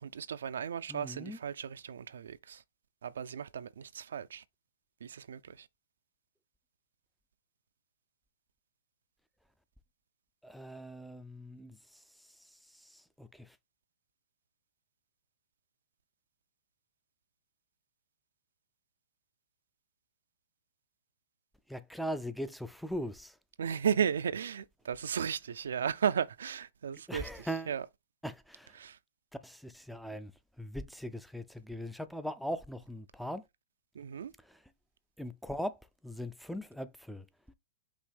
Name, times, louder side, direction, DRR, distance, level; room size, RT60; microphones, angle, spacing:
voice 1, 0.0-2.6 3.0-4.4 5.0-5.7 23.6-27.8 28.8-29.0 33.9-34.3, right 7 dB, 75° right, 0.3 m, -35 dB
voice 2, 0.9-1.4 10.4-13.6 21.7-23.4 27.1-27.7 28.2-28.8 29.4-30.3 30.6-33.5 34.4-34.6 35.2-37.3, equal, ahead, 0.3 m, -40 dB
5.3 x 2.8 x 3.3 m
hypercardioid pair, 135°, 0 cm